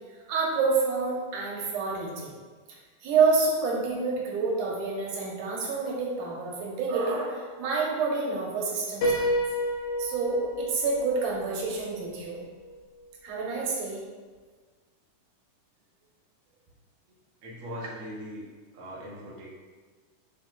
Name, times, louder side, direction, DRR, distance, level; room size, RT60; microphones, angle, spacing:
voice 1, 0.3-2.3 3.0-9.3 10.0-12.4 13.2-14.0 17.8-17.9, right 4 dB, 75° right, -3 dB, 2.8 m, -28 dB
Piano, 9.0-12.8, equal, 60° left, 1.8 m, -30 dB
voice 2, 17.4-18.5 18.7-19.5, equal, 50° right, -5 dB, 0.9 m, -40 dB
7.2 x 7.0 x 2.5 m, 1.4 s
omnidirectional pair, 3.6 m